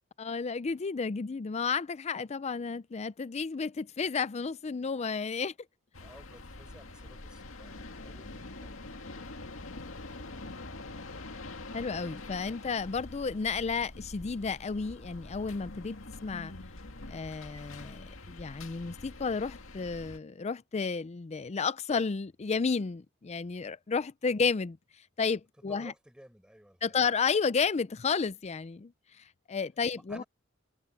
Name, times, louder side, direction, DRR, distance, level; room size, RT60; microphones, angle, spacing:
voice 1, 0.2-5.5 11.7-16.0 16.2-16.5 17.1-24.8 25.2-25.9 26.8-28.9 29.5-30.2, left 5 dB, 35° left, 0.4 m, -32 dB
sound 1, 5.9-20.2, left 2 dB, 90° left, 2.0 m, -45 dB
voice 2, 6.0-9.6 9.9-10.8 25.7-27.1 29.9-30.2, equal, 5° right, 4.4 m, -56 dB
head